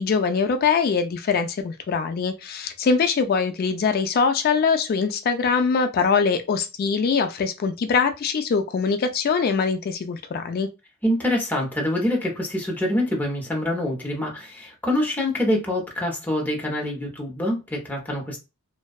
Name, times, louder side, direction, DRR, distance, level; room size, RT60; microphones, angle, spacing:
voice 1, 0.0-10.7, left 5 dB, 45° left, 0.3 m, -23 dB
voice 2, 11.0-18.4, left 1 dB, 10° left, 0.7 m, -25 dB
2.6 x 2.2 x 2.3 m
head